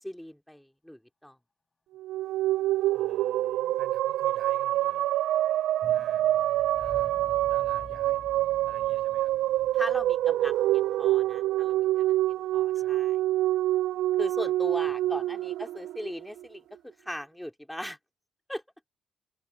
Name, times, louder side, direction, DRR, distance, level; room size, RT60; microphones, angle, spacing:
voice 1, 0.0-1.4 9.7-13.2 14.2-18.0 18.5-18.6, equal, 5° left, 2.7 m, -39 dB
sound 1, 2.0-16.4, right 14 dB, 90° right, 0.3 m, -26 dB
voice 2, 2.9-5.1 5.9-6.3 6.8-7.2 7.5-8.3 8.6-9.3 10.6-10.9 12.8-13.0 15.0-15.2, right 8 dB, 60° right, 5.2 m, -52 dB
sound 2, 4.1-12.3 12.5-12.6, left 4 dB, 25° left, 6.2 m, -51 dB
open air
cardioid pair, 100°, 0 cm